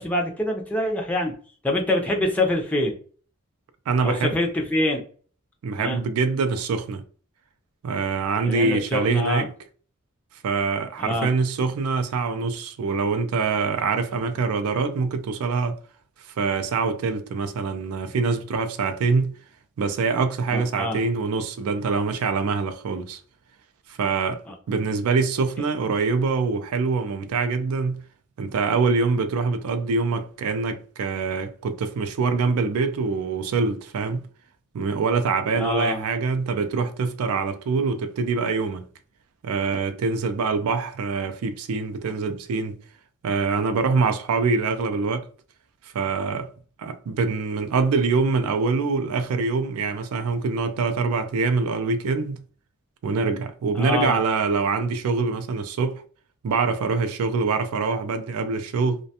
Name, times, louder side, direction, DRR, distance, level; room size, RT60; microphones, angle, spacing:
voice 1, 0.0-1.3 1.6-2.9 4.0-5.0 5.8-6.0 8.4-9.5 11.0-11.3 20.5-21.0 24.5-24.6 35.6-36.0 53.8-54.2, left 1 dB, 5° left, 0.4 m, -25 dB
voice 2, 3.9-4.4 5.6-7.0 7.8-9.5 10.4-15.8 16.4-19.3 19.8-23.2 23.9-24.4 24.7-28.0 28.4-34.3 34.7-38.8 39.4-42.8 43.2-45.3 45.9-46.5 46.8-52.4 53.0-56.0 56.4-59.0, right 4 dB, 85° right, 0.4 m, -24 dB
2.4 x 2.2 x 2.7 m
head